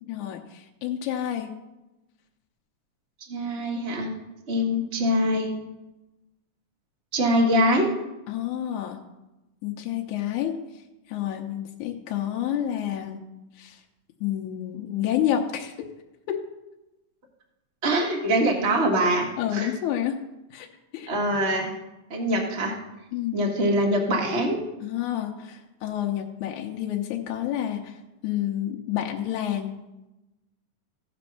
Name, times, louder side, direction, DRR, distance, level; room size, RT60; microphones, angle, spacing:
voice 1, 0.0-1.5 8.3-9.0 9.6-10.6 11.1-13.2 13.6-13.8 14.2-15.8 16.3-16.4 19.4-20.2 20.5-20.7 20.9-21.1 23.1-23.5 24.8-28.0 28.2-29.8, left 11 dB, 75° left, 1 dB, 2.0 m, -29 dB
voice 2, 3.3-4.1 4.5-5.6 7.1-7.9 17.8-19.7 21.1-21.7 22.1-22.8 23.3-24.6, equal, 80° right, -1 dB, 0.6 m, -23 dB
15.0 x 5.3 x 5.7 m, 0.99 s
omnidirectional pair, 3.9 m